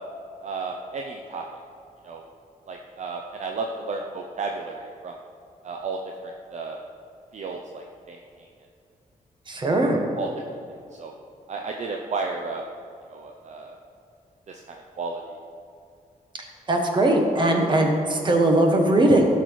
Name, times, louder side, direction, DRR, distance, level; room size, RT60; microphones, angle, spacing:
voice 1, 0.4-1.4 2.0-2.3 2.7-5.1 5.6-6.0 6.2-6.8 7.3-8.5 10.2-10.3 11.0-11.1 11.5-12.6 13.1-13.7 14.5-15.2, right 4 dB, 50° right, 2 dB, 0.7 m, -33 dB
voice 2, 9.5-10.0 16.7-19.3, right 1 dB, 30° right, 2 dB, 1.4 m, -20 dB
16.0 x 6.0 x 4.7 m, 2.5 s
wide cardioid pair, 175°, 15 cm